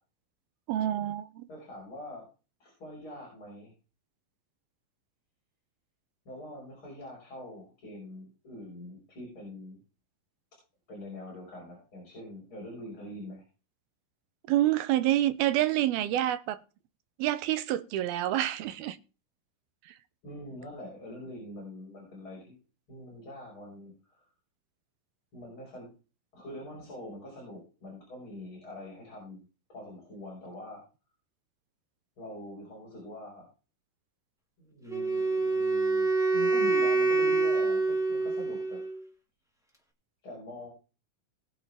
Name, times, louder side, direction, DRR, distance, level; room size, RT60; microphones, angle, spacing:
voice 1, 0.7-1.5 14.5-16.6 17.2-19.0, right 13 dB, 85° right, 2.8 m, -27 dB
voice 2, 1.5-2.3 2.6-3.7 6.2-9.8 10.9-13.4 20.2-22.6 22.9-24.2 25.3-25.9 26.3-29.4 29.7-30.8 32.2-33.5 34.6-38.8 40.2-40.7, left 1 dB, 30° left, 6.2 m, -44 dB
Wind instrument woodwind instrument, 34.9-39.0, right 3 dB, ahead, 0.7 m, -26 dB
20.5 x 7.2 x 3.7 m
omnidirectional pair, 4.3 m